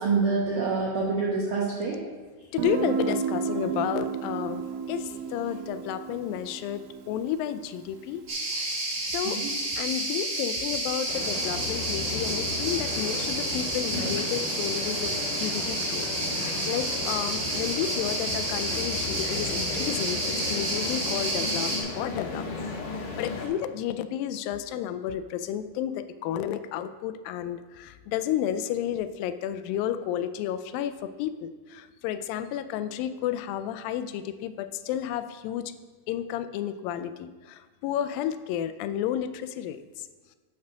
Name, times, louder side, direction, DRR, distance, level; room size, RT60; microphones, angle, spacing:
voice 1, 0.0-2.0 9.2-9.5, right 4 dB, 75° right, -3 dB, 1.2 m, -26 dB
voice 2, 2.5-4.6 4.9-8.2 9.1-9.4 9.7-16.1 16.4-35.6 36.1-39.8, left 10 dB, 85° left, 11 dB, 2.3 m, -32 dB
Guitar, 2.6-8.1, right 7 dB, 90° right, 2.4 m, -32 dB
sound 1, 8.3-21.8, right 1 dB, 40° right, 1.0 m, -30 dB
sound 2, 11.1-23.5, left 4 dB, 65° left, 2.7 m, -35 dB
7.4 x 6.2 x 6.0 m, 1.3 s
omnidirectional pair, 4.0 m